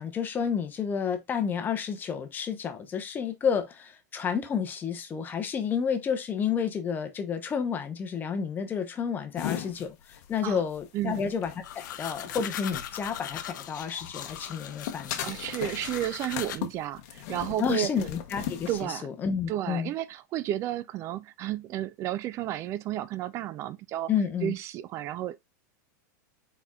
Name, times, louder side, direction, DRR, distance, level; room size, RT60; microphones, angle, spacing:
voice 1, 0.0-9.9 10.3-15.2 17.6-19.9 24.1-24.5, left 7 dB, 20° left, 0.7 m, -30 dB
sound 1, 9.4-13.9 14.2-18.9, left 11 dB, 55° left, 0.8 m, -38 dB
voice 2, 10.9-11.3 15.2-17.9 18.7-19.1 19.5-24.1 24.4-25.4, right 13 dB, 30° right, 0.4 m, -32 dB
sound 2, 11.6-16.6, left 10 dB, 85° left, 0.6 m, -39 dB
4.3 x 4.2 x 2.3 m
supercardioid pair, 145°, 10 cm